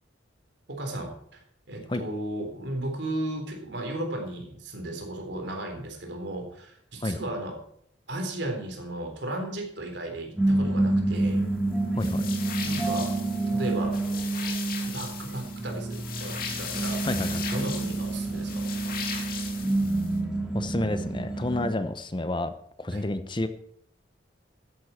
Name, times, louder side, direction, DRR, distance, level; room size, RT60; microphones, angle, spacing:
voice 1, 0.7-1.4 1.7-7.6 8.1-11.4 12.6-13.2 13.5-14.0 14.9-17.0 17.4-18.7 22.9-23.0, right 1 dB, 70° right, 3 dB, 3.8 m, -35 dB
Gong Garden - Temptle Gongs Atmos, 10.4-21.7, right 2 dB, 5° right, 2.6 m, -28 dB
sound 1, 12.0-20.2, left 6 dB, 55° left, 2.7 m, -38 dB
voice 2, 12.0-12.3 17.0-17.6 19.2-19.3 20.5-22.5 22.8-23.5, left 1 dB, 25° left, 11 dB, 0.9 m, -30 dB
13.0 x 10.0 x 4.4 m, 0.68 s
head